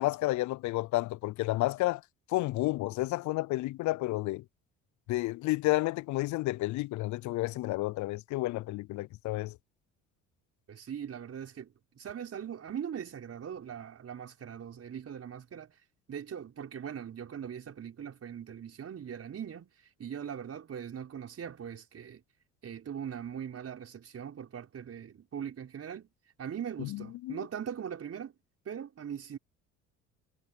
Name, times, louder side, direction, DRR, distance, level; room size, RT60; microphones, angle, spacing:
voice 1, 0.0-2.0 2.3-4.4 5.1-9.5 26.9-27.4, left 18 dB, 60° left, 0.6 m, -31 dB
voice 2, 10.7-15.7 16.1-19.7 20.0-22.2 22.6-26.1 26.4-28.3 28.7-29.4, right 8 dB, 45° right, 5.7 m, -40 dB
supercardioid pair, 70°, 33 cm